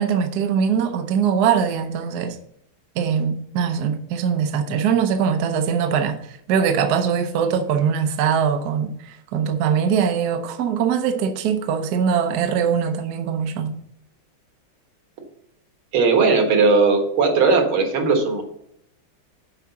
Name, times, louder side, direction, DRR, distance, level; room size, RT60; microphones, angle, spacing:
voice 1, 0.0-2.4 3.0-13.7, right 7 dB, 60° right, 1.2 m, -22 dB
voice 2, 15.9-18.4, right 4 dB, 85° right, 2.3 m, -17 dB
7.4 x 4.8 x 6.9 m
omnidirectional pair, 2.2 m